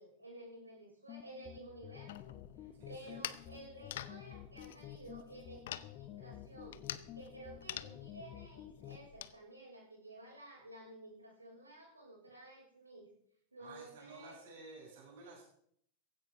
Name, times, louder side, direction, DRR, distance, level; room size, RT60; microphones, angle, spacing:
voice 1, 0.0-6.8 7.1-13.1 13.5-14.5, right 1 dB, 80° right, -1 dB, 6.3 m, -53 dB
sound 1, 1.1-9.1, left 12 dB, 35° left, 1.2 m, -51 dB
sound 2, 2.1-9.4, left 12 dB, 55° left, 0.7 m, -48 dB
voice 2, 2.8-3.3 13.6-15.4, right 3 dB, 55° right, -4 dB, 7.5 m, -53 dB
16.0 x 16.0 x 3.7 m, 0.68 s
figure-of-eight pair, 90°, 0 cm